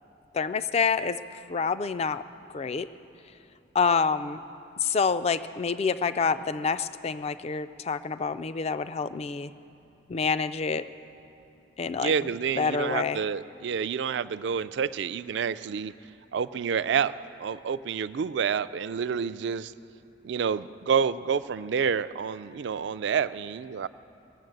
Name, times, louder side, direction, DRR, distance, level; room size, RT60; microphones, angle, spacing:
voice 1, 0.3-2.2 2.5-2.9 3.7-4.4 4.8-9.5 10.1-10.8 11.8-12.1 12.6-13.2, left 5 dB, 30° left, 13 dB, 0.3 m, -27 dB
voice 2, 12.0-15.9 16.3-19.7 20.2-23.9, right 6 dB, 60° right, 14 dB, 0.3 m, -28 dB
20.5 x 7.4 x 7.8 m, 2.7 s
head